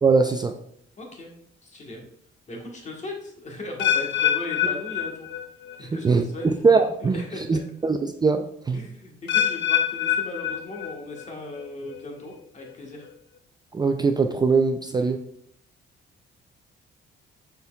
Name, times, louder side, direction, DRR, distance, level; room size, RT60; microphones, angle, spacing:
voice 1, 0.0-0.5 6.0-7.2 7.5-8.8 13.7-15.2, right 4 dB, 20° right, 6 dB, 0.3 m, -21 dB
voice 2, 1.0-1.3 1.6-2.0 2.5-5.3 5.8-6.6 7.0-7.6 8.7-13.1 15.0-15.2, left 2 dB, 35° left, 1 dB, 1.4 m, -38 dB
sound 1, 3.8-5.8 6.1-6.5 7.2-7.3 9.3-11.2 11.6-12.0 12.6-12.7, left 10 dB, 70° left, 0.5 m, -25 dB
5.3 x 4.4 x 2.3 m, 0.66 s
cardioid pair, 90°, 20 cm